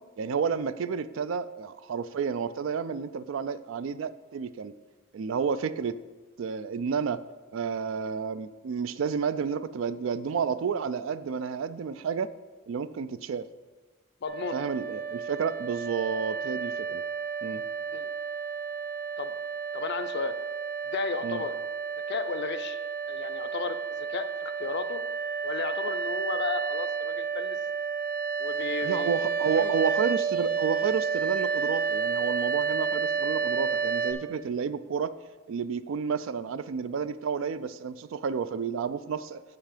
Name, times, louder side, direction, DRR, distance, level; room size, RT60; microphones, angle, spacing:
voice 1, 0.2-4.7 5.1-6.0 6.4-7.2 7.5-12.3 12.7-13.5 14.5-17.0 17.4-17.6 21.2-21.4 28.8-35.1 35.5-39.4, right 6 dB, 70° right, 15 dB, 0.3 m, -31 dB
voice 2, 14.2-14.6 17.9-18.1 19.2-19.3 19.7-20.3 20.9-21.6 22.1-22.8 23.1-25.0 25.4-27.6 28.4-29.1 29.5-29.7, left 5 dB, 55° left, 11 dB, 0.4 m, -34 dB
sound 1, 14.2-34.1, right 6 dB, 45° right, 0.8 m, -31 dB
7.4 x 5.8 x 5.0 m, 1.3 s
head